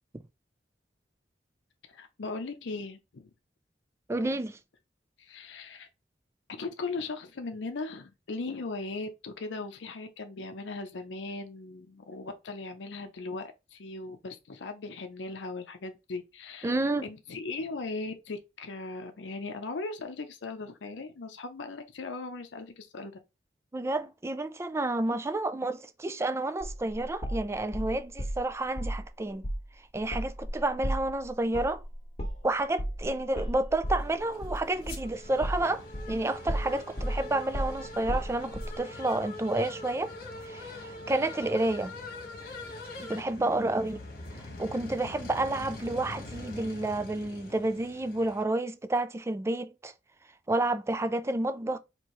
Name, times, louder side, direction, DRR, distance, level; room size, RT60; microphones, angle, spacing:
voice 1, 1.9-3.3 5.2-5.9 6.5-23.1, left 3 dB, 85° left, 0.6 m, -38 dB
voice 2, 4.1-4.6 16.6-17.1 23.7-29.4 29.9-31.8 32.4-40.1 40.4-41.9 43.0-44.0 44.6-49.9 50.5-51.8, right 2 dB, 15° right, 0.3 m, -30 dB
sound 1, 26.6-28.4 28.8-29.0 29.4-29.6 29.9-36.2 36.5-38.7, equal, 35° left, 1.2 m, -34 dB
sound 2, 33.9-48.4, left 2 dB, 55° left, 1.4 m, -43 dB
4.5 x 2.9 x 3.0 m
head